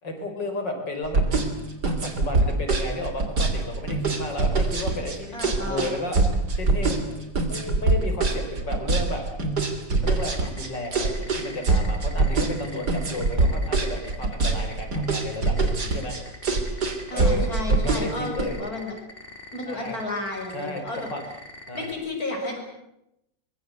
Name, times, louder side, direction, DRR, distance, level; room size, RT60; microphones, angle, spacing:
voice 1, 0.0-1.5 1.8-7.2 7.5-9.2 10.0-16.2 17.1-18.6 19.6-20.0 20.5-21.2 21.7-21.9, left 1 dB, 70° left, 4 dB, 5.6 m, -33 dB
sound 1, 1.0-18.4, right 3 dB, 60° right, 3.6 m, -23 dB
voice 2, 5.3-5.9 17.1-18.9 19.5-21.1 21.7-22.6, left 2 dB, 50° left, 2 dB, 6.7 m, -32 dB
sound 2, 10.0-21.9, left 1 dB, 30° left, 3.9 m, -43 dB
24.0 x 22.0 x 8.2 m, 0.84 s
omnidirectional pair, 2.0 m